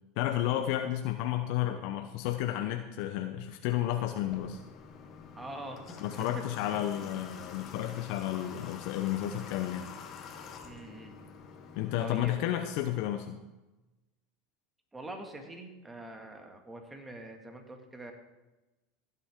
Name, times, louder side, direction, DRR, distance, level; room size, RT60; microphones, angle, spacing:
voice 1, 0.2-4.6 6.0-9.9 11.8-13.4, left 12 dB, 65° left, 6 dB, 0.7 m, -32 dB
Water / Water tap faucet, 4.2-12.2, left 6 dB, 40° left, 1.5 m, -47 dB
voice 2, 5.4-6.3 6.6-6.8 10.6-11.2 12.0-12.7 14.9-18.1, right 1 dB, 15° right, 3 dB, 2.0 m, -44 dB
15.5 x 8.4 x 3.7 m, 1.1 s
hypercardioid pair, 100°, 0 cm